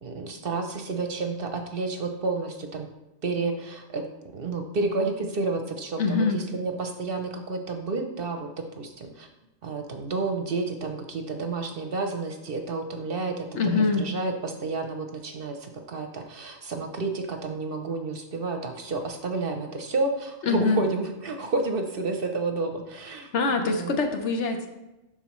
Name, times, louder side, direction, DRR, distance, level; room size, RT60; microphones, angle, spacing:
voice 1, 0.0-2.9 3.2-4.1 4.3-9.3 9.6-24.0, right 3 dB, 55° right, 5 dB, 0.8 m, -30 dB
voice 2, 6.0-6.4 13.5-14.1 20.4-20.8 23.3-24.7, left 4 dB, 65° left, 5 dB, 1.1 m, -24 dB
11.5 x 4.2 x 3.1 m, 0.99 s
omnidirectional pair, 1.3 m